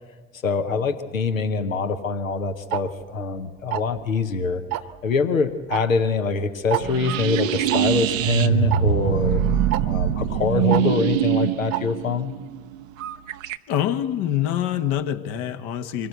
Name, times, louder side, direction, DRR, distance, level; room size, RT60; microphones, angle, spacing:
voice 1, 0.4-4.6 5.0-9.4 9.8-12.3, left 5 dB, 90° left, 8 dB, 0.9 m, -24 dB
Tick-tock, 2.7-2.8 3.7-4.0 4.7-5.0 5.7-5.8 6.1-6.2 6.7-6.8 7.7-7.8 8.7-8.8 9.7-9.8 10.7-10.8 11.7-11.8, right 16 dB, 60° right, 1.1 m, -25 dB
sound 1, 6.8-13.6, right 9 dB, 80° right, 0.7 m, -23 dB
voice 2, 13.7-16.1, left 11 dB, 65° left, 9 dB, 1.3 m, -25 dB
24.5 x 17.0 x 8.1 m, 1.4 s
figure-of-eight pair, 50°, 39 cm